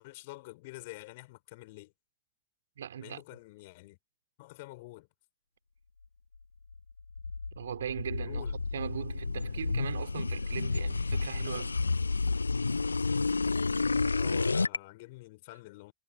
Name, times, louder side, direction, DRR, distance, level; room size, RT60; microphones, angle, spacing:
voice 1, 0.0-1.9 3.0-4.0 4.4-5.1 8.2-8.6 14.1-15.9, left 22 dB, 50° left, 5.0 m, -48 dB
voice 2, 2.8-3.2 7.6-11.8, right 9 dB, 65° right, 6.1 m, -39 dB
sound 1, 6.7-14.8, left 4 dB, 80° left, 0.7 m, -30 dB
figure-of-eight pair, 90°, 0 cm